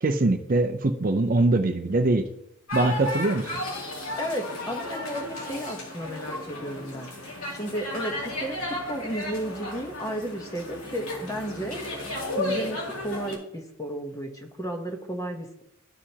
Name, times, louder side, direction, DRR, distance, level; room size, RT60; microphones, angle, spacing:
voice 1, 0.0-2.3 2.7-3.6, right 2 dB, 40° right, 7 dB, 0.5 m, -23 dB
sound 1, 2.7-13.3, left 1 dB, 90° left, 2.5 m, -34 dB
voice 2, 4.2-7.1 7.5-8.6 8.9-11.8 12.4-15.6, right 1 dB, 15° left, 3 dB, 1.0 m, -33 dB
13.5 x 4.9 x 2.8 m, 0.83 s
head